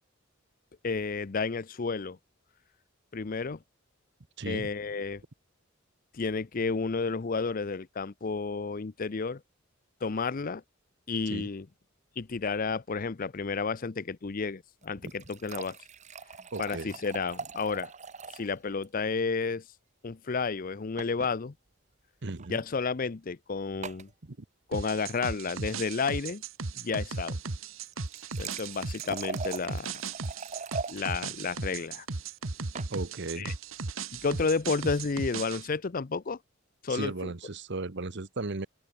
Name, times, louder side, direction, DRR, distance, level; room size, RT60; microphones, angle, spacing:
voice 1, 0.8-2.2 3.1-3.6 4.5-5.2 6.1-9.4 10.0-10.6 11.1-11.7 12.2-15.8 16.6-17.9 18.3-19.6 20.0-21.5 22.5-24.1 24.7-26.4 26.7-27.4 28.4-30.0 30.9-32.1 33.4-33.5 34.1-36.4 36.8-37.3, left 4 dB, 45° left, 0.6 m, -31 dB
voice 2, 4.4-4.7 11.3-11.5 15.0-15.1 16.5-16.9 22.2-22.6 24.2-24.4 32.9-33.5 36.9-38.7, right 3 dB, 60° right, 1.1 m, -36 dB
sound 1, 14.8-18.5 18.8-18.9 19.2-19.3 21.0-21.3 22.3-22.5 23.8-24.1 27.9-31.0 32.4-32.9, right 4 dB, 35° right, 1.1 m, -41 dB
sound 2, 24.7-35.7, right 4 dB, 80° right, 1.4 m, -36 dB
open air
head